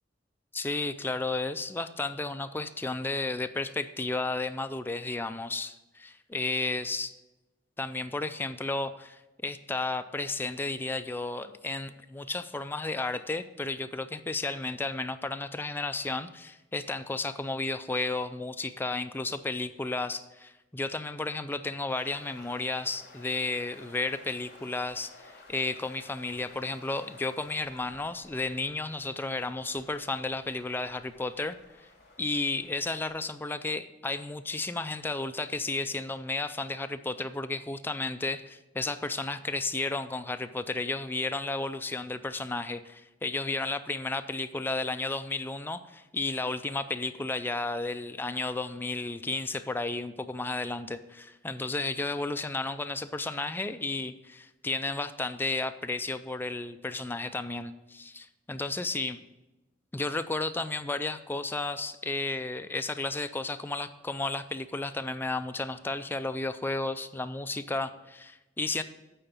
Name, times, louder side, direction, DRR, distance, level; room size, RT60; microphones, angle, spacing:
voice 1, 0.5-7.1 7.8-31.6 32.2-59.2 59.9-68.8, left 2 dB, 10° left, 10 dB, 0.3 m, -33 dB
sound 1, 21.9-33.3, left 2 dB, 60° left, 2.0 m, -54 dB
8.9 x 4.0 x 7.1 m, 1.0 s
head